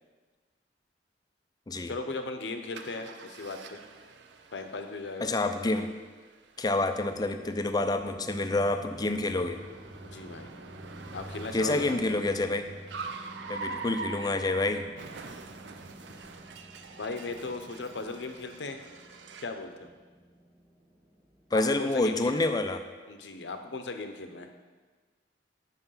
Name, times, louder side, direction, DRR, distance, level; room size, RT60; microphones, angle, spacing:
voice 1, 1.9-3.8 4.5-5.5 10.0-10.5 11.1-12.2 17.0-18.8 19.4-19.9 21.5-22.5 23.1-24.5, left 3 dB, 85° left, 6 dB, 0.8 m, -37 dB
Car, 2.7-19.6, right 4 dB, 80° right, 0.6 m, -45 dB
voice 2, 5.2-5.9 6.6-9.6 11.5-12.7 13.5-14.9 21.5-22.8, left 2 dB, 25° left, 8 dB, 0.5 m, -28 dB
sound 1, 7.0-23.3, equal, 15° right, 0.7 m, -50 dB
7.7 x 5.8 x 5.7 m, 1.4 s
head